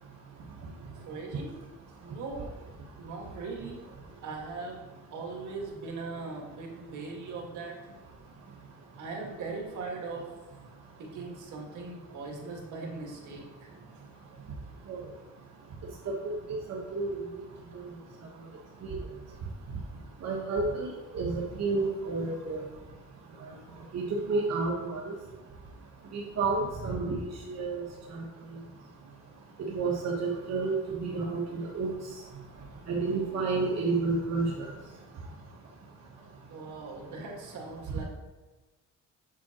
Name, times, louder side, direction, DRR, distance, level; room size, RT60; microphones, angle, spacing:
voice 1, 1.1-1.5 2.0-2.5 2.9-3.8 4.2-4.8 5.1-7.8 9.0-10.3 11.0-14.1 36.5-38.0, right 3 dB, 80° right, 0 dB, 1.9 m, -40 dB
voice 2, 16.0-17.2 17.7-17.8 18.8-18.9 20.2-22.6 23.9-24.0 24.3-25.1 26.1-27.8 28.1-28.2 29.7-31.9 32.9-34.7, right 3 dB, 60° right, -3 dB, 1.3 m, -30 dB
7.3 x 7.2 x 3.0 m, 1.2 s
cardioid pair, 90°, 30 cm